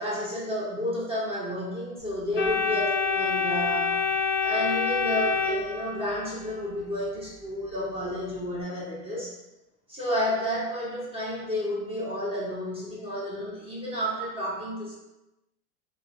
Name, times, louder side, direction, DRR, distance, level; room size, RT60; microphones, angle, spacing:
voice 1, 0.0-4.0 4.4-9.3 9.9-15.0, left 1 dB, 15° right, -5 dB, 0.7 m, -31 dB
Organ, 2.4-6.3, left 5 dB, 30° left, 0.9 m, -26 dB
3.5 x 2.1 x 2.4 m, 0.95 s
hypercardioid pair, 115°, 46 cm